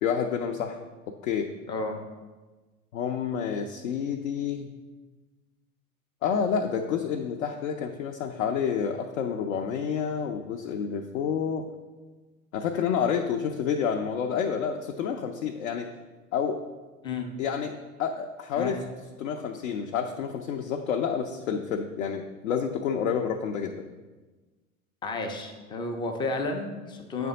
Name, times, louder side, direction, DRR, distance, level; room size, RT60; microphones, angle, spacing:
voice 1, 0.0-0.8 1.2-1.5 2.9-4.7 6.2-11.7 12.5-15.9 16.3-16.6 17.4-18.8 19.2-23.9, left 7 dB, 65° left, 3 dB, 0.6 m, -29 dB
voice 2, 1.7-2.0 17.0-17.3 18.5-18.8 25.0-27.3, left 3 dB, 10° left, 4 dB, 0.4 m, -32 dB
8.3 x 3.4 x 3.8 m, 1.3 s
figure-of-eight pair, 80°, 44 cm